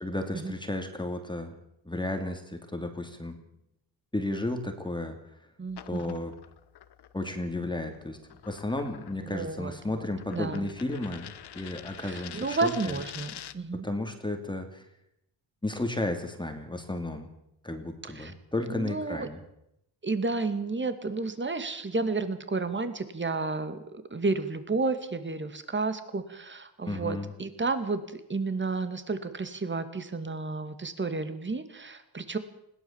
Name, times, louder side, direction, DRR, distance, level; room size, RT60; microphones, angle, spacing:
voice 1, 0.0-1.5 1.9-3.4 4.1-5.2 5.8-6.3 7.1-8.2 8.4-13.0 13.7-14.8 15.6-17.3 17.6-19.4 26.9-27.3, left 2 dB, 10° left, 5 dB, 2.4 m, -33 dB
voice 2, 5.6-6.2 9.2-10.7 12.0-13.9 18.1-18.3 18.7-19.3 20.0-23.8 24.1-32.4, right 3 dB, 25° right, 10 dB, 2.3 m, -32 dB
sound 1, 5.7-13.7, left 10 dB, 60° left, 1.2 m, -47 dB
20.5 x 17.5 x 7.3 m, 0.81 s
cardioid pair, 105°, 46 cm